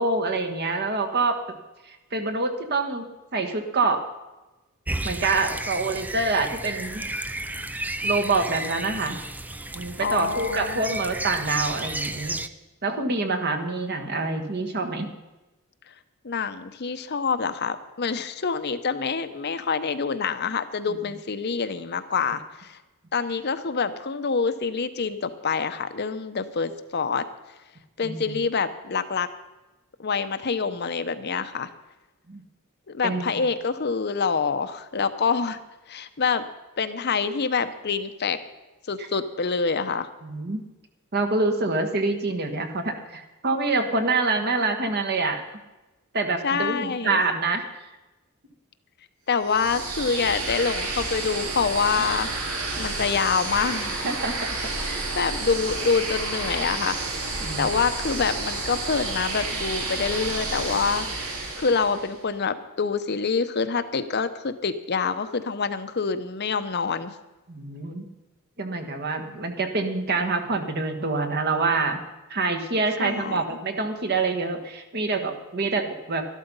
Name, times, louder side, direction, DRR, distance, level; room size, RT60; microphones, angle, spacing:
voice 1, 0.0-1.6 1.9-4.0 5.0-7.1 8.0-9.2 9.7-12.4 12.8-15.1 28.0-28.2 32.3-32.4 33.0-33.3 40.2-40.6 41.1-45.4 46.1-47.6 54.0-54.4 54.8-55.1 57.4-57.7 67.5-68.1 68.6-72.0 72.3-76.2, right 3 dB, 50° right, 6 dB, 1.4 m, -26 dB
sound 1, 4.9-12.5, right 2 dB, 10° right, 0.4 m, -32 dB
voice 2, 10.0-10.8 15.9-16.0 16.2-22.8 23.1-27.2 28.0-29.3 30.0-31.7 32.9-35.6 35.9-36.4 36.8-38.4 38.9-40.1 46.4-47.2 49.3-54.0 55.2-57.0 57.6-67.1 73.0-73.4, left 5 dB, 50° left, 10 dB, 0.8 m, -26 dB
sound 2, 49.4-62.2, right 3 dB, 80° right, 2.6 m, -30 dB
12.5 x 12.0 x 5.4 m, 1.1 s
head